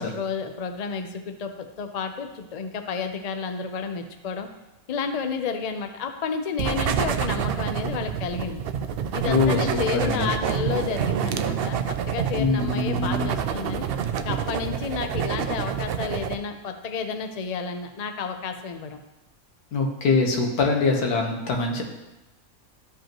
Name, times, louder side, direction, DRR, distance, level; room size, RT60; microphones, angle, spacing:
voice 1, 0.0-4.5 4.9-8.6 9.1-13.8 14.2-19.0, left 5 dB, 55° left, 6 dB, 0.4 m, -31 dB
sound 1, 6.6-16.3, right 8 dB, 85° right, 0.5 m, -27 dB
voice 2, 9.2-10.3 12.4-13.3 19.7-21.8, left 3 dB, 85° left, 1 dB, 1.7 m, -23 dB
13.5 x 5.3 x 3.0 m, 1.0 s
omnidirectional pair, 1.6 m